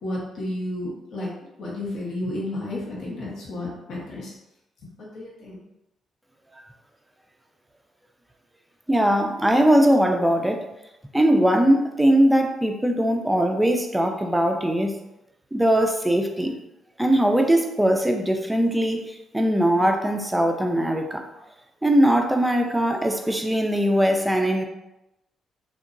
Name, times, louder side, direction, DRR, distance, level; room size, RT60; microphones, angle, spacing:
voice 1, 0.0-1.3 1.6-4.3 5.0-5.6, left 1 dB, 70° left, -4 dB, 0.9 m, -32 dB
voice 2, 8.9-10.6 11.1-14.9 15.5-16.5 17.0-21.2 21.8-24.7, right 1 dB, 5° right, 3 dB, 0.3 m, -20 dB
2.7 x 2.2 x 2.5 m, 0.92 s
cardioid pair, 90°, 0 cm